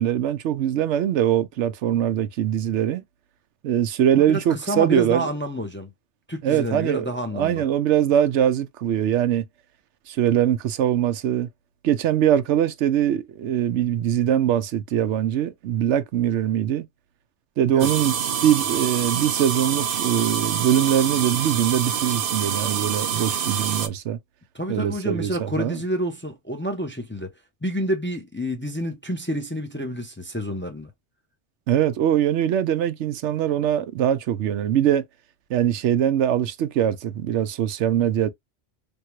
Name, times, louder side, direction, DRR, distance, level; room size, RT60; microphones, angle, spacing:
voice 1, 0.0-3.0 3.6-5.2 6.4-9.4 10.1-11.5 11.8-16.9 17.6-18.1 18.4-24.2 24.7-25.8 31.7-35.0 35.5-38.3, right 10 dB, 85° right, 0.9 m, -22 dB
voice 2, 4.1-5.9 6.3-7.6 17.7-17.9 24.5-27.3 27.6-30.9, equal, 15° left, 0.5 m, -29 dB
sound 1, 17.8-23.9, right 8 dB, 55° right, 0.8 m, -26 dB
3.6 x 2.2 x 3.0 m
omnidirectional pair, 1.2 m